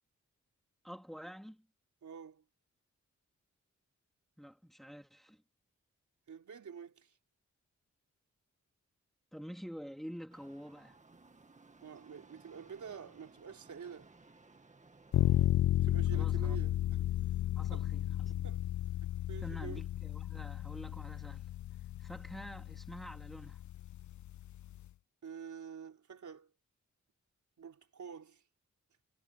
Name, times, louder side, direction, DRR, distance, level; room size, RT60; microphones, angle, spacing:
voice 1, 0.8-1.7 4.4-5.4 9.3-11.0 16.1-16.6 17.6-18.6 19.4-21.5 22.0-23.6, equal, ahead, 2.5 m, -48 dB
voice 2, 2.0-2.4 6.3-7.1 11.8-14.1 15.8-17.0 17.7-17.9 18.3-18.6 19.3-19.8 25.2-26.5 27.6-28.4, right 7 dB, 80° right, 3.9 m, -48 dB
sound 1, 10.3-15.5, right 3 dB, 25° right, 2.0 m, -60 dB
sound 2, 15.1-24.9, left 12 dB, 80° left, 0.5 m, -33 dB
wide cardioid pair, 120°, 29 cm